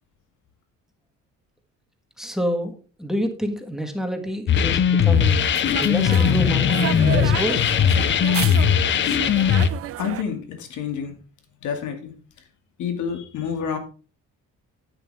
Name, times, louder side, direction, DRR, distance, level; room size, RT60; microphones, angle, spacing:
voice 1, 2.2-2.7 3.0-7.6, equal, ahead, 4 dB, 1.4 m, -28 dB
sound 1, 4.5-9.7, left 8 dB, 35° left, 0.6 m, -19 dB
sound 2, 5.1-10.2, right 13 dB, 45° right, 0.4 m, -32 dB
voice 2, 10.0-11.2 11.6-12.1 12.8-13.8, left 7 dB, 65° left, 6 dB, 2.4 m, -28 dB
10.5 x 9.6 x 3.5 m, 0.36 s
cardioid pair, 170°, 32 cm